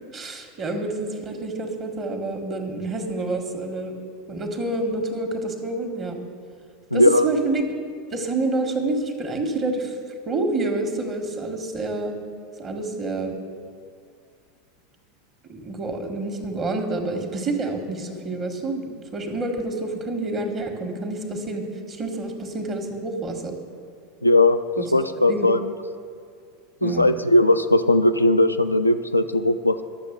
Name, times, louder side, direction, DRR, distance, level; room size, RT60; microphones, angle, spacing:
voice 1, 0.1-3.9 4.3-6.2 6.9-7.6 8.1-9.9 10.3-12.2 12.6-13.4 15.5-23.6 24.8-24.9 25.3-25.5 26.8-27.1, right 2 dB, 30° right, 4 dB, 1.7 m, -28 dB
voice 2, 6.9-7.3 24.2-25.6 26.8-29.8, left 1 dB, 90° left, 8 dB, 0.4 m, -18 dB
11.5 x 7.0 x 6.8 m, 2.2 s
figure-of-eight pair, 80°, 0 cm